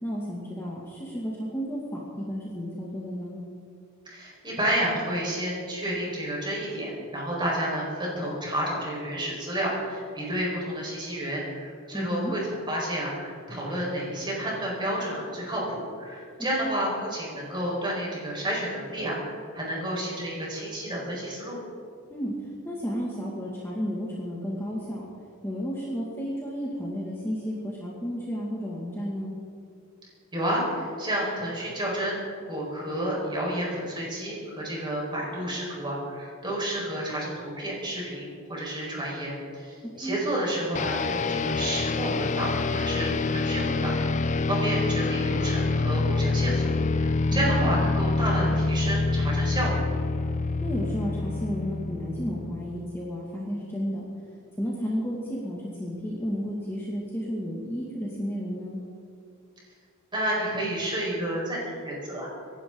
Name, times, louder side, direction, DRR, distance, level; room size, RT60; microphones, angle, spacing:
voice 1, 0.0-3.4 11.9-12.3 16.6-16.7 22.1-22.4 22.6-25.1 25.4-29.4 39.8-40.2 47.3-47.7 50.6-54.1 54.6-58.8, equal, 10° left, -5 dB, 2.1 m, -32 dB
voice 2, 4.0-12.4 12.7-21.6 30.3-32.2 32.5-49.8 60.1-62.3, right 1 dB, 20° right, -4 dB, 4.9 m, -30 dB
sound 1, 40.7-53.0, left 3 dB, 35° left, 0.4 m, -26 dB
25.5 x 11.5 x 3.9 m, 2.4 s
head